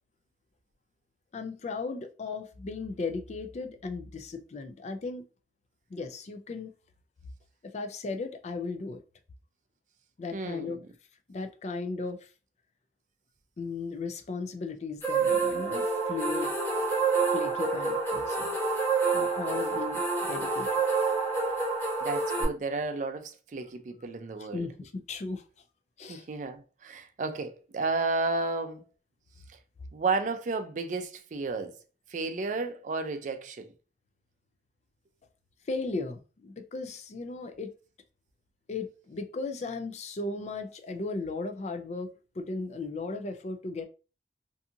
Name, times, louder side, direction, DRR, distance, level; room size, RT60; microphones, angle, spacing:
voice 1, 1.3-5.3 5.9-6.7 7.7-9.0 10.2-10.8 11.3-12.3 13.6-16.5 17.3-18.6 19.1-20.8 24.4-25.4 26.0-26.3 35.7-37.7 38.7-43.8, left 3 dB, 40° left, 0.3 m, -36 dB
voice 2, 10.3-10.8 22.0-24.7 26.1-28.8 29.9-31.8 32.1-33.7, right 3 dB, 45° right, 0.4 m, -32 dB
sound 1, 15.0-22.4, right 4 dB, 10° left, 0.8 m, -28 dB
2.6 x 2.5 x 2.6 m
head